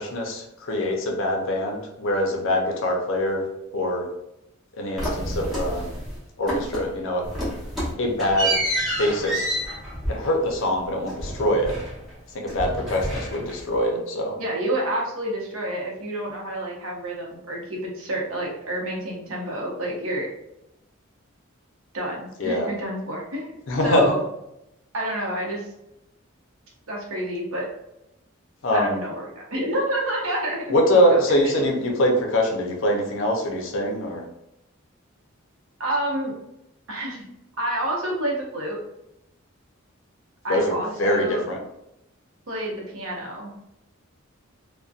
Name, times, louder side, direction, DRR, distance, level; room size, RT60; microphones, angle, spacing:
voice 1, 0.0-3.4 3.7-4.0 4.8-5.9 6.4-7.2 8.0-8.6 9.0-9.6 10.1-11.7 12.3-14.4 22.4-22.7 23.7-24.1 28.6-29.0 30.7-34.2 40.5-41.6, left 1 dB, 65° left, 1 dB, 0.5 m, -23 dB
sound 1, 5.0-6.2 6.5-7.0 7.2-12.2 12.5-13.8, right 1 dB, ahead, 0.8 m, -29 dB
voice 2, 14.4-20.3 21.9-23.5 23.8-24.2 24.9-25.7 26.9-27.7 28.7-31.9 35.8-36.3 36.9-37.2 37.6-38.8 40.4-41.4 42.5-43.5, right 1 dB, 70° right, -2 dB, 0.7 m, -29 dB
2.5 x 2.1 x 2.3 m, 0.85 s
head